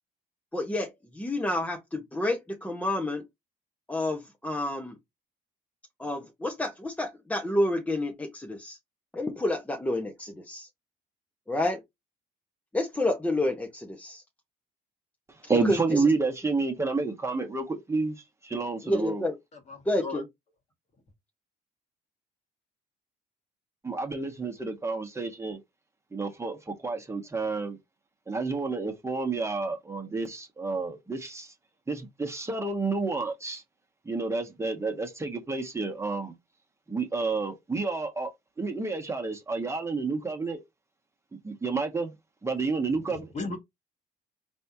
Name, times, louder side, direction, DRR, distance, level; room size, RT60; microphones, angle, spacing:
voice 1, 0.5-3.2 3.9-5.0 6.0-8.8 9.1-10.7 11.5-11.8 12.7-14.2 15.6-16.1 18.8-19.3 19.8-20.2, left 1 dB, 10° left, 1.0 m, -29 dB
voice 2, 15.5-19.2 23.8-25.6 26.1-27.8 28.3-31.5 31.9-33.6 34.0-36.3 36.9-38.3 38.6-40.6 41.4-42.1 42.4-43.3, right 3 dB, 15° right, 1.2 m, -30 dB
voice 3, 19.7-20.2 43.1-43.6, left 3 dB, 40° left, 1.7 m, -36 dB
4.3 x 3.5 x 2.7 m
cardioid pair, 110°, 17 cm